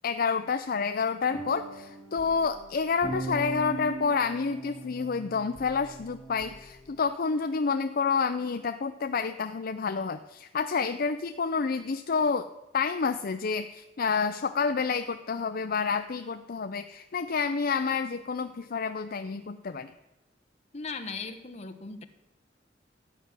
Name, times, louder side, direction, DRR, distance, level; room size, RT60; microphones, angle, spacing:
voice 1, 0.0-12.5 12.7-19.9, left 5 dB, 55° left, 9 dB, 0.5 m, -29 dB
sound 1, 1.3-7.1, right 3 dB, 10° left, 1.7 m, -40 dB
voice 2, 20.7-22.0, left 4 dB, 35° left, 6 dB, 1.1 m, -38 dB
13.0 x 6.1 x 9.6 m, 0.98 s
head